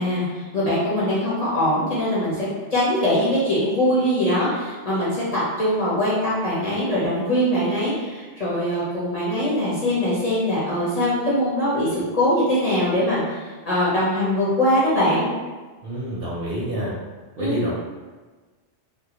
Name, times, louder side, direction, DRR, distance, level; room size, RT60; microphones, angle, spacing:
voice 1, 0.0-15.3 17.4-17.6, left 1 dB, 40° left, -9 dB, 0.7 m, -22 dB
voice 2, 15.8-16.9 17.4-17.7, right 1 dB, 65° right, -5 dB, 0.7 m, -27 dB
2.2 x 2.1 x 2.8 m, 1.3 s
omnidirectional pair, 1.2 m